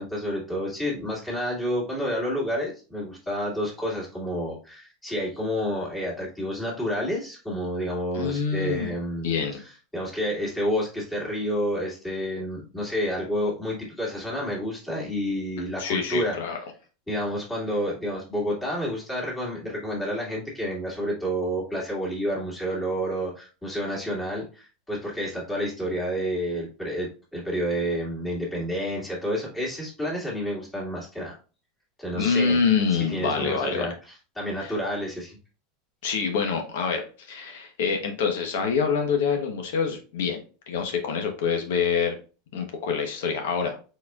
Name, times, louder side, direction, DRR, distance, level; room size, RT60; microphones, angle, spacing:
voice 1, 0.0-16.3 17.1-31.4 32.0-32.6 32.9-33.9 34.4-35.4, equal, 10° left, -4 dB, 2.0 m, -29 dB
voice 2, 8.1-8.9 9.2-9.6 15.8-16.6 32.1-33.9 34.6-34.7 36.0-42.2 42.5-43.8, left 6 dB, 80° left, 4 dB, 1.0 m, -26 dB
4.6 x 4.3 x 2.4 m, 0.35 s
supercardioid pair, 155°, 0 cm